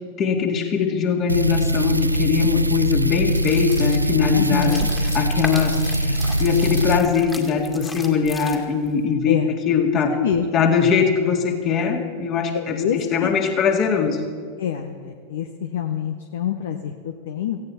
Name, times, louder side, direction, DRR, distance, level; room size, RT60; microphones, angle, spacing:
voice 1, 0.2-9.4 9.7-10.2 10.5-14.2, left 6 dB, 30° left, 5 dB, 2.2 m, -21 dB
sound 1, 1.3-7.0, right 1 dB, 85° right, 0.4 m, -22 dB
sound 2, 3.3-8.9, left 2 dB, 10° left, 2.1 m, -36 dB
voice 2, 4.3-4.9 9.3-9.5 10.1-10.4 12.5-13.3 14.6-17.6, left 9 dB, 60° left, 7 dB, 0.9 m, -26 dB
17.5 x 16.0 x 4.3 m, 2.2 s
figure-of-eight pair, 90°, 0 cm